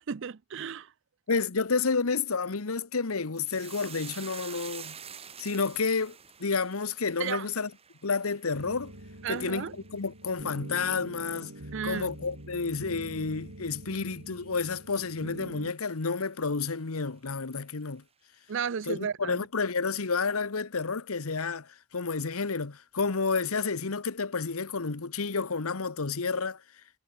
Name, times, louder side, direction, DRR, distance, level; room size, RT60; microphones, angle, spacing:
voice 1, 0.1-0.9 7.2-7.5 9.2-9.7 11.7-12.1 18.5-19.4, right 7 dB, 60° right, 0.5 m, -33 dB
voice 2, 1.3-5.0 5.4-7.7 8.0-8.9 9.3-11.5 11.8-18.0 18.9-26.6, left 4 dB, 85° left, 1.1 m, -30 dB
sound 1, 3.4-12.0 12.3-12.9 13.2-13.4, right 8 dB, 30° right, 1.7 m, -48 dB
sound 2, 8.5-15.7, right 1 dB, 80° right, 5.3 m, -45 dB
head